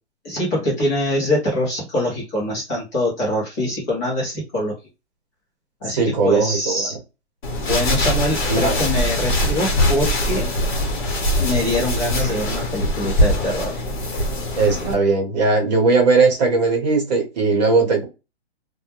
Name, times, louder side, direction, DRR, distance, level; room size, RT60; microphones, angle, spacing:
voice 1, 0.2-4.7 5.8-7.0 7.7-10.5 11.4-13.8, left 1 dB, 15° left, 0.6 m, -24 dB
voice 2, 6.0-6.9 8.5-8.7 14.6-18.1, right 4 dB, 40° right, 0.9 m, -18 dB
sound 1, 7.4-14.9, left 1 dB, 45° left, 0.9 m, -22 dB
2.2 x 2.0 x 2.8 m
hypercardioid pair, 170°, 33 cm